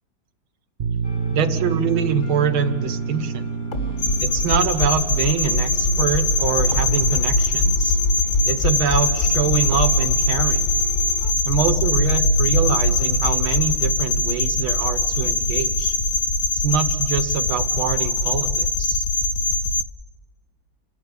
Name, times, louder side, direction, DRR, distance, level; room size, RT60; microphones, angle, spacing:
sound 1, 0.8-12.1, right 5 dB, 55° right, 0.7 m, -31 dB
sound 2, 1.0-11.3, right 2 dB, 40° left, 2.2 m, -36 dB
voice 1, 1.3-3.4 4.2-8.0 8.4-10.6 11.4-16.0 16.5-19.0, right 7 dB, 80° right, 10 dB, 2.0 m, -25 dB
sound 3, 4.0-19.8, left 2 dB, 65° left, 0.9 m, -21 dB
29.0 x 11.0 x 8.2 m, 1.5 s
omnidirectional pair, 2.3 m